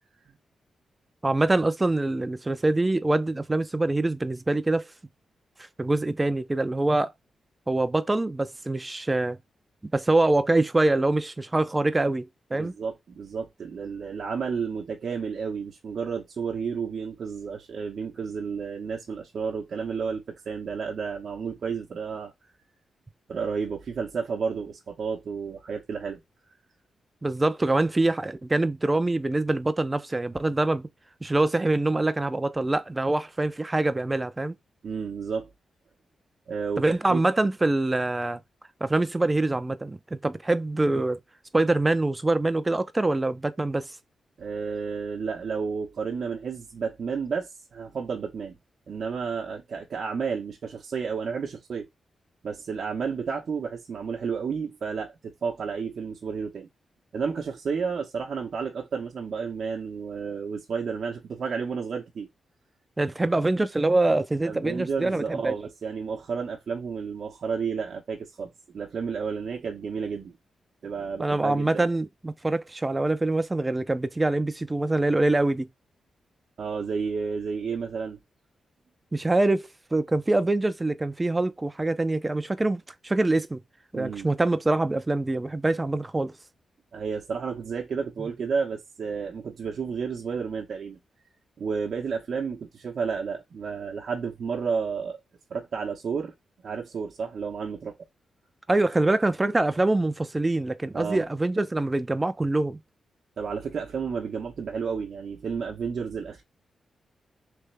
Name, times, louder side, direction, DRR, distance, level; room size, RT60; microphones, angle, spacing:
voice 1, 1.2-4.9 5.8-7.1 7.7-9.4 9.9-12.2 12.5-12.7 27.2-30.9 31.2-34.6 36.8-38.4 38.8-41.2 41.5-43.9 63.0-65.5 71.2-75.7 79.1-83.6 83.9-86.3 98.7-102.8, right 2 dB, 20° right, 0.6 m, -24 dB
voice 2, 12.5-22.3 23.3-26.2 34.8-35.5 36.5-37.2 44.4-48.6 48.9-51.9 52.4-56.7 57.1-62.3 64.4-70.3 70.8-71.9 76.6-78.2 83.9-84.3 86.9-91.0 91.6-95.2 95.5-96.3 96.6-97.9 100.9-101.2 103.4-106.4, right 5 dB, 65° right, 0.9 m, -31 dB
3.4 x 3.2 x 3.2 m
cardioid pair, 75°, 0 cm